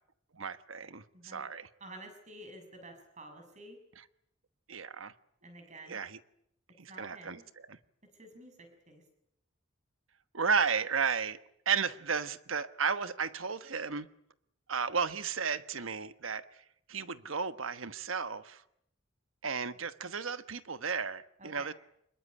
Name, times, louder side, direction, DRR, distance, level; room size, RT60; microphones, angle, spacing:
voice 1, 0.3-1.7 4.7-5.1 5.9-6.2 6.8-7.4 7.7-7.8 10.3-11.4 11.6-14.1 14.7-16.5 16.9-18.6 19.4-21.7, right 6 dB, 80° right, 1.3 m, -33 dB
voice 2, 1.1-1.5 1.8-3.8 5.4-6.1 6.9-7.5 8.0-9.0 21.4-21.7, right 1 dB, 35° right, 6.8 m, -50 dB
25.5 x 21.5 x 9.9 m
head